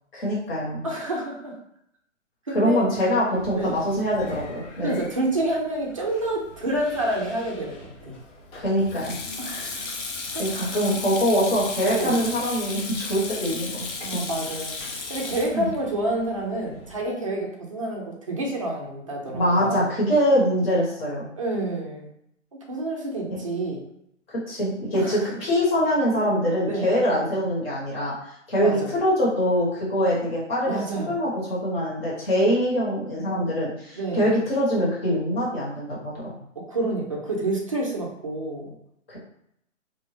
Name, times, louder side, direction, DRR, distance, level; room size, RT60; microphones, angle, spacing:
voice 1, 0.1-0.8 2.5-4.9 8.5-9.2 10.4-13.8 15.5-15.7 19.3-21.3 23.3-23.4 24.3-30.8 31.0-36.3 39.1-39.2, equal, 50° left, -6 dB, 1.4 m, -24 dB
voice 2, 0.8-1.6 2.5-2.9 3.6-3.8 4.8-8.2 9.4-9.8 10.3-10.8 12.0-12.2 14.0-14.8 15.1-19.9 21.4-22.1 22.7-23.8 24.9-25.2 26.6-26.9 28.6-28.9 30.7-31.2 34.0-34.2 36.6-38.7, right 1 dB, 30° right, -2 dB, 0.4 m, -28 dB
Sink (filling or washing), 3.3-17.0, left 3 dB, 65° left, 0.7 m, -36 dB
2.7 x 2.2 x 3.2 m, 0.75 s
hypercardioid pair, 155°, 38 cm